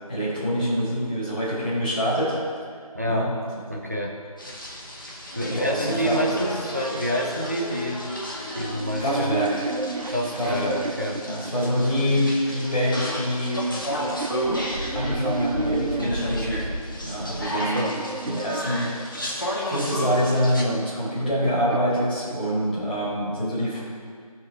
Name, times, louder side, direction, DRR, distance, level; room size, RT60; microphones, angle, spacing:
voice 1, 0.1-2.4 3.1-3.3 3.7-3.9 5.4-6.4 9.0-9.6 10.3-10.8 11.2-13.7 14.9-16.7 17.0-17.8 18.2-18.9 19.7-23.8, equal, 15° left, -13 dB, 1.7 m, -25 dB
voice 2, 2.9-3.3 3.7-4.1 5.3-8.1 8.5-9.5 10.1-11.2 11.6-11.7 17.7-18.0, equal, 25° right, 0 dB, 0.7 m, -28 dB
sound 1, 4.4-20.6, equal, 35° left, 1.2 m, -32 dB
sound 2, 8.7-12.1 13.0-16.4 17.1-19.5 20.5-22.9, right 3 dB, 80° right, 0.5 m, -33 dB
15.0 x 5.4 x 3.7 m, 2.1 s
figure-of-eight pair, 175°, 19 cm